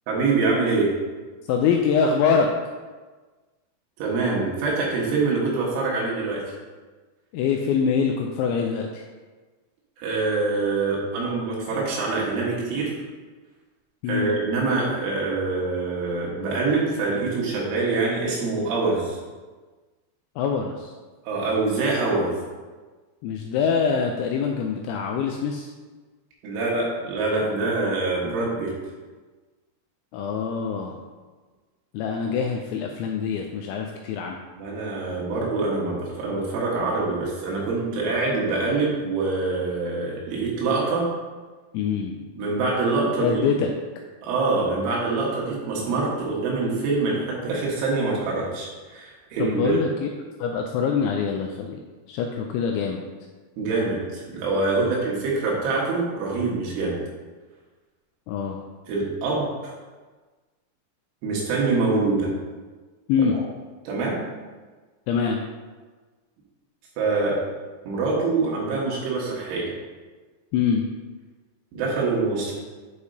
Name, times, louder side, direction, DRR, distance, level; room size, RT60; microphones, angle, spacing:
voice 1, 0.1-0.9 4.0-6.4 10.0-13.0 14.1-19.2 21.3-22.4 26.4-28.7 34.6-41.1 42.3-43.6 44.2-49.8 53.6-57.0 58.9-59.7 61.2-62.3 63.3-63.4 63.9-64.2 67.0-67.4 67.9-69.7 71.7-72.5, right 3 dB, 75° right, -4 dB, 3.8 m, -25 dB
voice 2, 1.5-2.5 7.3-9.0 14.0-14.3 20.4-20.9 23.2-25.7 28.2-28.3 30.1-31.0 31.9-34.4 41.7-42.2 43.2-43.7 49.4-50.1 50.4-51.8 52.1-53.0 54.8-54.9 58.3-58.6 63.1-63.4 65.1-65.4 70.5-70.8, left 6 dB, 85° left, 2 dB, 2.7 m, -24 dB
10.5 x 4.9 x 2.7 m, 1.3 s
omnidirectional pair, 5.7 m